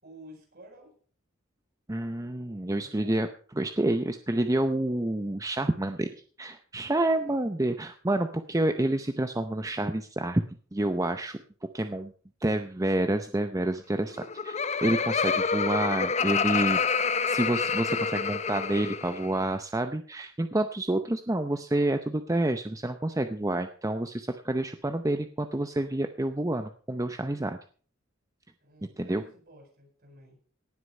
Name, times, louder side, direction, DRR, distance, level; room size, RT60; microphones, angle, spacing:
voice 1, 0.0-0.9 2.8-3.2 6.9-7.5 28.6-30.4, equal, 50° right, 1 dB, 8.0 m, -52 dB
voice 2, 1.9-3.3 3.5-6.1 6.4-10.4 10.7-11.4 11.7-12.1 12.4-16.8 17.3-27.6 29.0-29.2, right 1 dB, 15° right, 8 dB, 0.7 m, -28 dB
Laughter, 14.1-19.3, left 5 dB, 35° left, 0.6 m, -28 dB
18.0 x 8.1 x 5.4 m, 0.43 s
head